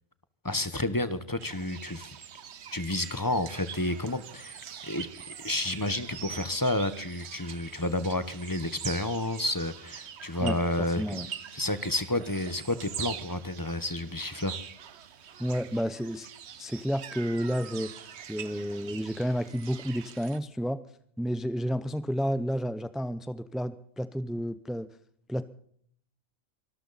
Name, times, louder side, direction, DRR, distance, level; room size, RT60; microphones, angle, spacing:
voice 1, 0.4-2.1 2.7-5.1 5.4-11.2 11.5-14.5, left 1 dB, 15° left, 13 dB, 1.0 m, -30 dB
sound 1, 1.4-20.4, right 8 dB, 60° right, 1.1 m, -44 dB
voice 2, 15.4-16.3 16.6-17.9 18.3-20.8 21.2-24.9 25.3-25.5, equal, ahead, 13 dB, 0.3 m, -31 dB
24.5 x 13.5 x 4.1 m, 0.63 s
omnidirectional pair, 1.4 m